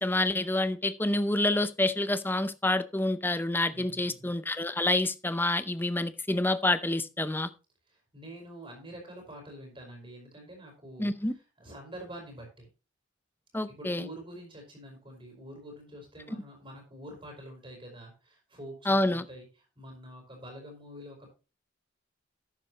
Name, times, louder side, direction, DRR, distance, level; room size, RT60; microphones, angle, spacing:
voice 1, 0.0-7.5 11.0-11.3 13.5-14.1 18.9-19.2, left 2 dB, 10° left, 13 dB, 0.5 m, -28 dB
voice 2, 3.7-4.3 7.9-12.7 13.7-19.5 19.7-21.3, equal, 25° right, 2 dB, 4.9 m, -46 dB
12.0 x 9.1 x 3.0 m, 0.31 s
head